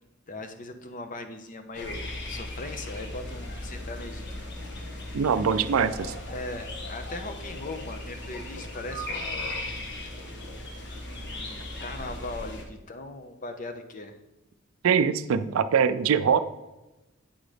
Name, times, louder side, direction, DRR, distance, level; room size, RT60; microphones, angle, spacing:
voice 1, 0.3-4.4 6.3-9.6 11.0-14.2, left 2 dB, 40° left, 7 dB, 0.7 m, -39 dB
sound 1, 1.7-12.6, left 1 dB, 60° left, 1.3 m, -37 dB
voice 2, 5.1-6.1 14.8-16.4, right 6 dB, 80° right, 13 dB, 0.4 m, -23 dB
8.6 x 3.9 x 5.0 m, 1.0 s
head